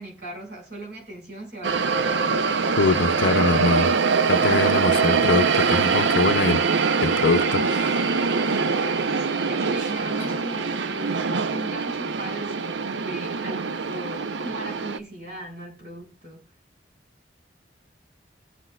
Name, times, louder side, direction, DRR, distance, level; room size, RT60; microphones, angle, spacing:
voice 1, 0.0-2.2 9.2-11.3 11.5-16.5, right 1 dB, 65° right, 5.3 m, -38 dB
sound 1, 1.6-15.0, right 5 dB, 85° right, 0.7 m, -23 dB
voice 2, 2.8-3.9 4.3-6.6 7.0-8.0, left 4 dB, 80° left, 0.6 m, -23 dB
22.5 x 8.0 x 2.3 m
head